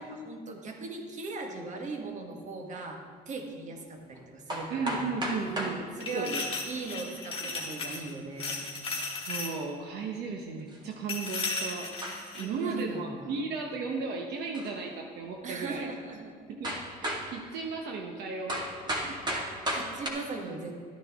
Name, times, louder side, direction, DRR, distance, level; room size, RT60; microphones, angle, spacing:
voice 1, 0.0-5.2 5.9-6.3 6.6-8.6 12.4-13.3 15.4-16.3 19.3-20.7, right 3 dB, 45° right, 3 dB, 1.6 m, -39 dB
sound 1, 2.7-2.9 4.1-4.2 4.5-5.8 7.1-7.6 9.0-9.1 9.4-9.5 10.7-10.9 11.4-11.5 12.0-12.4 14.5-14.8 15.5-15.6 16.6-17.3 18.5-20.1, right 1 dB, 25° right, 2.0 m, -34 dB
voice 2, 4.7-5.9 6.1-6.5 9.2-11.9 12.3-15.9 16.5-19.2, right 4 dB, 75° right, 2 dB, 1.1 m, -35 dB
sound 2, 6.0-8.1 8.4-9.5 11.1-12.5, left 3 dB, 35° left, 2.2 m, -35 dB
13.5 x 9.5 x 3.6 m, 2.1 s
cardioid pair, 110°, 17 cm